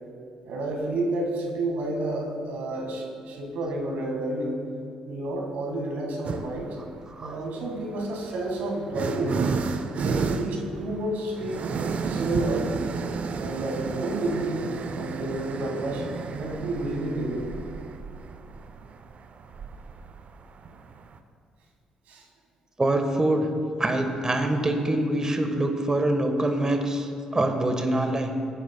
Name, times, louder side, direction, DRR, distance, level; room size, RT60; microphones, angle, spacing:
voice 1, 0.4-4.6 5.0-6.7 7.2-9.4 10.0-11.7 12.0-12.7 13.4-14.7 14.9-16.1 16.3-17.5 22.1-22.3, right 2 dB, 65° right, 0 dB, 1.8 m, -30 dB
sound 1, 6.2-6.7 7.7-21.2, right 5 dB, 50° right, 0.6 m, -32 dB
voice 2, 22.8-23.5 23.8-28.4, right 1 dB, 25° right, 5 dB, 1.4 m, -25 dB
15.5 x 9.2 x 2.3 m, 2.3 s
hypercardioid pair, 50°, 3 cm